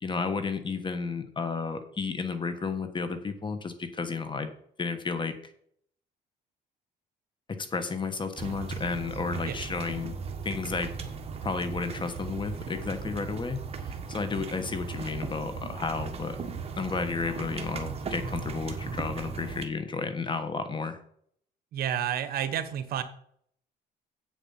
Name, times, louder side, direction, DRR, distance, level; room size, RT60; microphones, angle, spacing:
voice 1, 0.0-4.5 4.8-5.3 7.6-10.1 10.4-10.9 11.4-16.4 16.7-21.0, left 4 dB, 30° left, 10 dB, 1.4 m, -32 dB
sound 1, 8.4-19.7, right 5 dB, 35° right, 1.4 m, -37 dB
voice 2, 21.7-23.0, right 10 dB, 65° right, 11 dB, 1.2 m, -30 dB
8.2 x 7.2 x 5.7 m, 0.65 s
cardioid pair, 110°, 17 cm